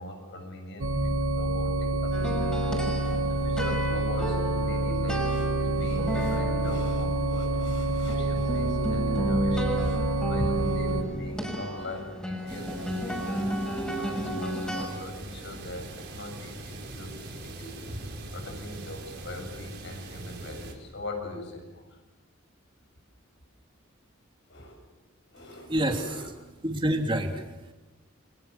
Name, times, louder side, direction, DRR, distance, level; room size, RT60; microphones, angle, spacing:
voice 1, 0.0-13.4 13.9-17.8 18.3-22.0 24.5-24.8 25.3-26.3, left 1 dB, 55° left, 4 dB, 7.3 m, -41 dB
sound 1, 0.8-11.0, right 2 dB, 70° right, 3.0 m, -27 dB
sound 2, 2.1-14.8, right 1 dB, 5° left, 6.4 m, -33 dB
sound 3, 12.5-20.7, right 2 dB, 50° right, 5.0 m, -42 dB
voice 2, 25.4-27.7, right 1 dB, 25° right, 3 dB, 3.1 m, -29 dB
29.5 x 25.5 x 7.2 m, 1.1 s
head